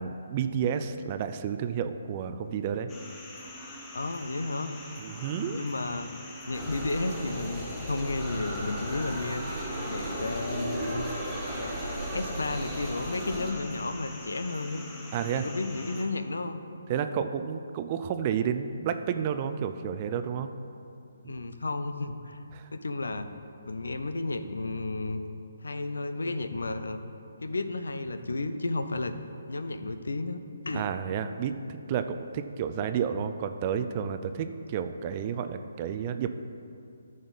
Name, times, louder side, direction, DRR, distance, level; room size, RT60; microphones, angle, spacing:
voice 1, 0.0-2.9 5.0-5.6 15.1-15.5 16.9-20.5 21.2-21.3 22.5-22.7 30.7-36.3, right 8 dB, 30° right, 9 dB, 0.4 m, -31 dB
sound 1, 2.9-16.0, left 1 dB, 15° left, 1.1 m, -44 dB
voice 2, 3.9-4.7 5.5-6.1 6.5-11.1 11.6-11.8 12.1-14.8 15.2-16.6 21.3-22.4 22.7-23.3 23.7-25.2 25.6-27.0 27.4-29.1 29.5-30.4 30.6-30.9, left 2 dB, 75° left, 10 dB, 0.6 m, -32 dB
sound 2, 6.5-13.5, right 1 dB, ahead, 2.0 m, -35 dB
14.0 x 5.1 x 4.1 m, 2.6 s
figure-of-eight pair, 140°, 0 cm